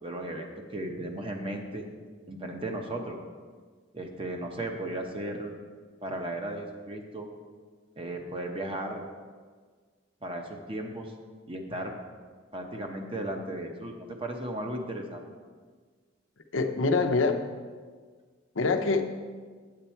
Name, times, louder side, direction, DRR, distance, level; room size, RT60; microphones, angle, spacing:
voice 1, 0.0-1.9 2.3-3.2 3.9-5.5 6.0-7.3 8.0-9.1 10.2-11.1 11.5-11.9 12.5-15.2, right 1 dB, 30° right, 3 dB, 1.0 m, -35 dB
voice 2, 16.5-17.4 18.5-19.0, left 3 dB, 85° left, 5 dB, 0.8 m, -24 dB
8.6 x 8.3 x 4.5 m, 1.6 s
head